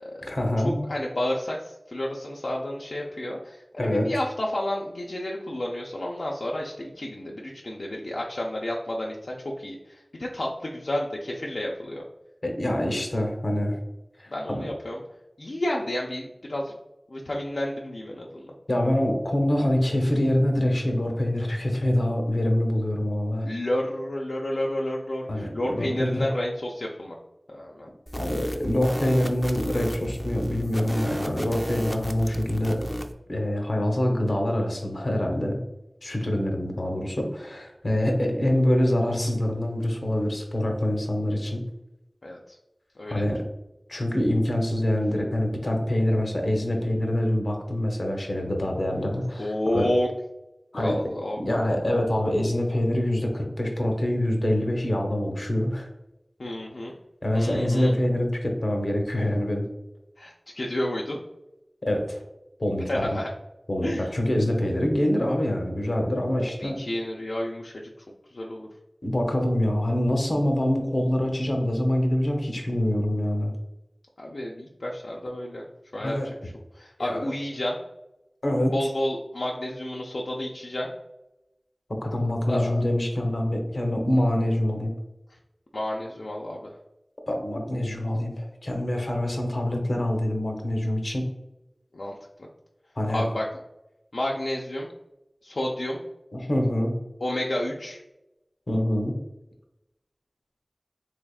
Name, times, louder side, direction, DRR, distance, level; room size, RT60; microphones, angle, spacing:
voice 1, 0.2-0.8 3.8-4.1 12.4-13.8 14.2-14.7 18.7-23.5 25.3-26.3 28.2-32.8 33.3-35.6 36.0-41.6 43.1-43.4 43.9-49.9 50.7-51.1 51.4-55.9 57.2-59.6 61.8-62.2 62.6-63.0 63.7-66.8 69.0-73.5 76.0-76.3 77.0-77.3 78.4-78.7 81.9-84.9 87.3-91.3 93.0-93.2 96.3-96.9 98.7-99.2, left 1 dB, 65° left, 2 dB, 0.8 m, -25 dB
voice 2, 0.9-12.0 12.9-13.0 14.3-15.0 15.4-16.7 17.1-18.5 23.4-27.2 27.5-27.9 42.2-42.4 43.0-43.2 49.4-50.1 50.7-51.8 56.4-56.9 57.3-58.0 60.2-61.2 62.9-63.3 63.8-64.1 66.6-67.7 68.3-68.7 74.2-75.6 75.9-77.8 78.7-80.9 82.5-82.8 85.7-86.7 91.9-92.1 92.4-92.5 93.1-93.4 94.1-94.9 95.4-96.0 97.2-98.0, left 1 dB, 90° left, -2 dB, 0.4 m, -30 dB
sound 1, 28.1-33.1, equal, 15° left, 0.4 m, -33 dB
3.4 x 3.4 x 2.3 m, 0.93 s
wide cardioid pair, 50°, 0 cm